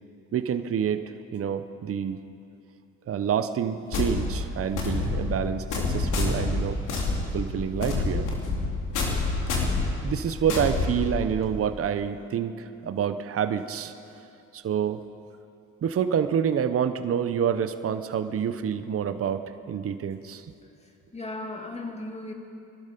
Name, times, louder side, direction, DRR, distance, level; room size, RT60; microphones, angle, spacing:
voice 1, 0.3-1.0 1.3-2.2 3.1-6.8 7.3-8.3 10.0-13.9 14.5-15.0 15.8-20.4, right 8 dB, 50° right, 10 dB, 0.8 m, -27 dB
sound 1, 3.9-11.6, left 3 dB, 85° left, 2.8 m, -28 dB
voice 2, 20.8-22.3, left 2 dB, 20° left, 1 dB, 2.3 m, -37 dB
21.5 x 12.0 x 5.3 m, 2.7 s
cardioid pair, 90°, 30 cm